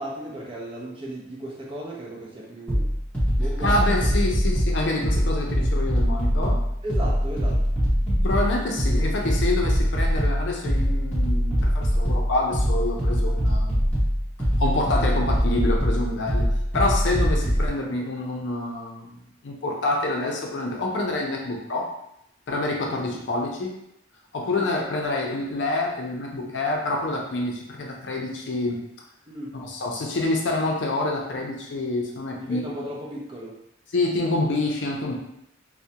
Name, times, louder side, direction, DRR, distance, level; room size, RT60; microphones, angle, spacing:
voice 1, 0.0-2.9 3.3-4.3 6.8-7.6 17.4-17.7 23.1-23.2 24.6-24.7 29.3-29.5 32.4-33.6, right 1 dB, 30° right, -4 dB, 0.5 m, -35 dB
sound 1, 2.7-17.7, equal, 10° left, 0.9 m, -23 dB
voice 2, 3.6-6.6 8.1-14.0 14.6-16.5 16.7-21.9 22.5-23.7 24.3-28.8 29.5-32.6 33.9-35.2, left 2 dB, 70° left, -1 dB, 0.5 m, -27 dB
2.3 x 2.1 x 2.7 m, 0.80 s
head